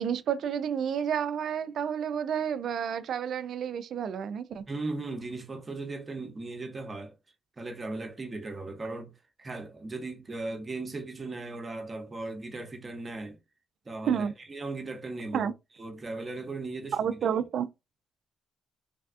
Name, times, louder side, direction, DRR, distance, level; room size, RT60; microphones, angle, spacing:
voice 1, 0.0-4.6 14.1-14.3 15.3-15.5 16.9-17.7, right 8 dB, 65° right, 0.3 m, -30 dB
voice 2, 4.7-7.1 7.6-9.1 9.4-13.4 13.9-15.5 15.8-17.2, right 2 dB, 30° right, 0.8 m, -37 dB
3.3 x 2.3 x 2.4 m
cardioid pair, 90°, 0 cm